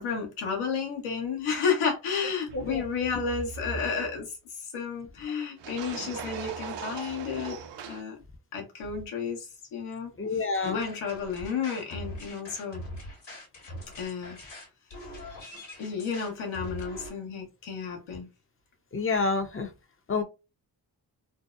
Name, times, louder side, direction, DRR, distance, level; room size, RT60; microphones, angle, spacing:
voice 1, 0.0-4.3 4.6-7.6 7.9-8.2 8.5-12.8 14.0-14.4 15.8-18.3, left 6 dB, 85° left, 0.9 m, -32 dB
sound 1, 2.5-4.2 5.6-8.0, right 5 dB, 60° right, 0.6 m, -40 dB
voice 2, 10.2-10.8 18.9-19.7 20.1-20.2, left 4 dB, 30° left, 0.5 m, -28 dB
sound 2, 10.5-17.1, left 1 dB, 65° left, 1.3 m, -42 dB
2.6 x 2.1 x 2.4 m
supercardioid pair, 40°, 48 cm